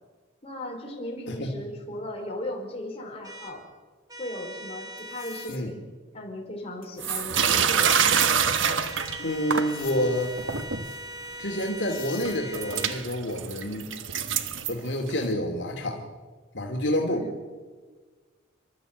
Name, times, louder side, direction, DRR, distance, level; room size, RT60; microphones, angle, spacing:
voice 1, 0.4-3.6 4.2-8.1 17.0-17.3, left 1 dB, 30° left, 0 dB, 4.9 m, -37 dB
sound 1, 3.2-3.5 4.1-5.5 7.7-8.5 8.8-13.0, right 1 dB, 20° right, 3.8 m, -41 dB
sound 2, 5.0-5.6 6.8-7.3 9.6-10.0 11.5-11.6 11.8-12.3, left 10 dB, 45° left, 4.0 m, -44 dB
sound 3, 7.0-9.7 10.2-10.9 11.6-11.7 12.2-15.3, right 7 dB, 85° right, 1.2 m, -25 dB
voice 2, 9.2-10.3 11.4-13.9 14.7-16.0 16.5-17.3, equal, 65° left, 1 dB, 2.5 m, -28 dB
30.0 x 12.5 x 8.0 m, 1.5 s
head